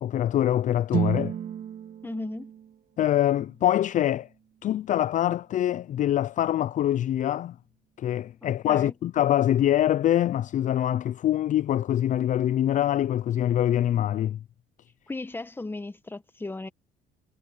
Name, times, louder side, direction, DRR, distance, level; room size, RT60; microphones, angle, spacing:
voice 1, 0.0-1.3 3.0-4.3 4.6-7.5 8.0-14.4, left 12 dB, 50° left, 0.5 m, -24 dB
sound 1, 0.9-5.0, right 9 dB, 55° right, 2.5 m, -34 dB
voice 2, 2.0-2.5 8.4-8.9 15.1-16.7, left 2 dB, 10° left, 1.4 m, -36 dB
cardioid pair, 110°, 17 cm